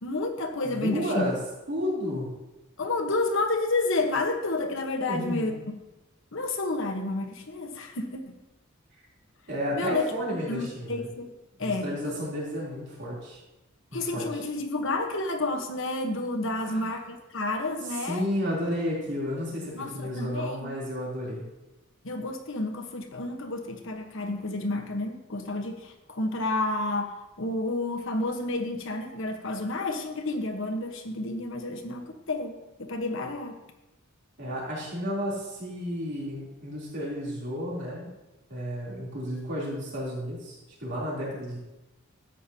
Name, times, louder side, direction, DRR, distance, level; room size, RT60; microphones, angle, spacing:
voice 1, 0.0-1.3 2.8-5.5 6.3-8.3 9.7-10.0 10.5-11.3 11.6-12.2 13.9-18.3 19.7-20.7 22.0-33.6, left 2 dB, 70° left, 5 dB, 1.2 m, -30 dB
voice 2, 0.6-1.4 1.7-2.3 5.0-5.5 9.5-11.1 11.6-13.4 14.0-14.4 16.6-17.0 17.8-21.4 34.4-38.1 38.5-41.6, equal, 60° right, -5 dB, 3.3 m, -32 dB
13.5 x 9.0 x 2.8 m, 1.0 s
head